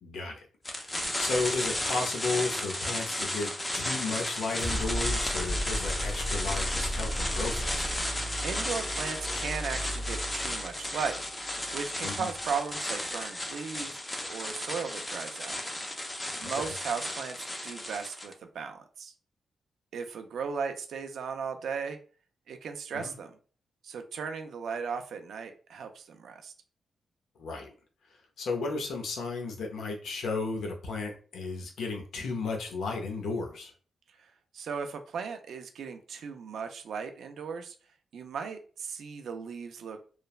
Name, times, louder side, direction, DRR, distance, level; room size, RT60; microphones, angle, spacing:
voice 1, 0.0-7.9 12.0-12.3 16.4-16.7 22.9-23.1 27.4-27.7 28.4-33.7, left 3 dB, 80° left, 1 dB, 0.6 m, -34 dB
sound 1, 0.6-18.3, left 1 dB, 15° left, 0.4 m, -34 dB
sound 2, 4.3-14.0, equal, 40° left, 0.9 m, -36 dB
voice 2, 8.4-11.2 11.7-14.0 14.3-15.6 16.4-17.4 17.6-19.1 19.9-22.0 22.5-23.4 23.8-26.5 34.5-37.7 38.1-40.0, right 6 dB, 75° right, 6 dB, 0.3 m, -36 dB
3.0 x 2.0 x 2.3 m, 0.40 s
wide cardioid pair, 160°, 0 cm